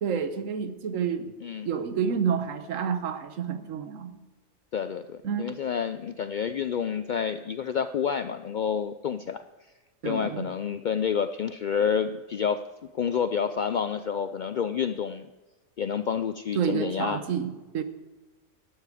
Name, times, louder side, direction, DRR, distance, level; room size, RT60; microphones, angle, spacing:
voice 1, 0.0-1.3 1.6-4.2 5.2-5.5 10.0-10.5 16.5-17.8, right 7 dB, 80° right, 11 dB, 1.3 m, -29 dB
voice 2, 4.7-9.4 10.0-12.6 12.9-15.3 15.8-17.2, left 7 dB, 80° left, 11 dB, 0.4 m, -29 dB
12.0 x 11.5 x 4.9 m, 1.2 s
omnidirectional pair, 1.3 m